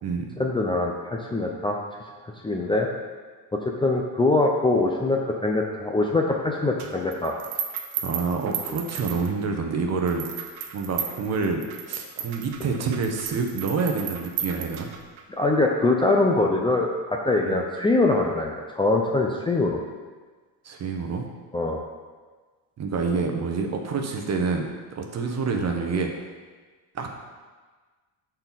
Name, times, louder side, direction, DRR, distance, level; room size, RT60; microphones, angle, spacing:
voice 1, 0.4-1.8 2.4-2.9 3.5-7.3 15.4-19.8 21.5-21.8, left 2 dB, 10° left, 0 dB, 0.6 m, -23 dB
sound 1, 6.8-9.6 10.1-15.2, right 8 dB, 90° right, 1.0 m, -34 dB
voice 2, 8.0-10.2 10.7-14.9 17.4-17.6 20.6-21.3 22.8-26.1 26.9-27.2, right 4 dB, 35° right, 3 dB, 1.1 m, -27 dB
13.0 x 4.5 x 4.1 m, 1.4 s
cardioid pair, 135°, 44 cm